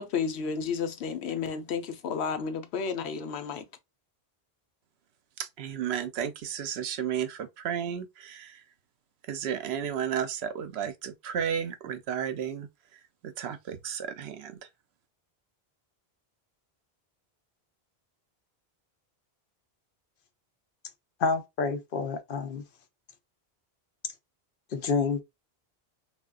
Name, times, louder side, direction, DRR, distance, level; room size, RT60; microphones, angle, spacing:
voice 1, 0.0-3.6, left 6 dB, 90° left, 0.9 m, -32 dB
voice 2, 5.4-8.6 9.3-12.7 13.2-14.5, right 8 dB, 80° right, 0.8 m, -33 dB
voice 3, 21.2-22.6 24.0-24.1 24.7-25.2, left 4 dB, 60° left, 0.7 m, -28 dB
3.5 x 2.3 x 2.3 m
omnidirectional pair, 1.1 m